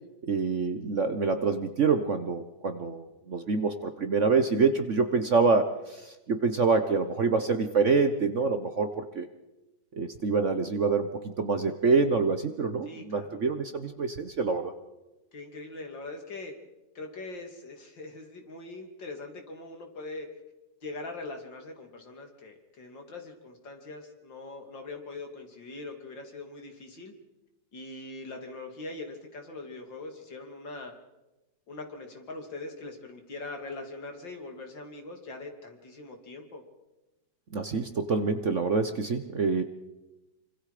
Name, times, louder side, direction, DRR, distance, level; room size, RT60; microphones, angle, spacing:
voice 1, 0.3-9.3 10.0-14.7 37.5-39.6, right 4 dB, 45° right, 8 dB, 1.3 m, -26 dB
voice 2, 12.9-13.4 15.3-16.5 17.0-20.3 20.8-27.1 27.7-30.9 31.7-36.6, left 2 dB, 80° left, 3 dB, 3.6 m, -42 dB
26.0 x 25.5 x 5.0 m, 1.0 s
omnidirectional pair, 2.0 m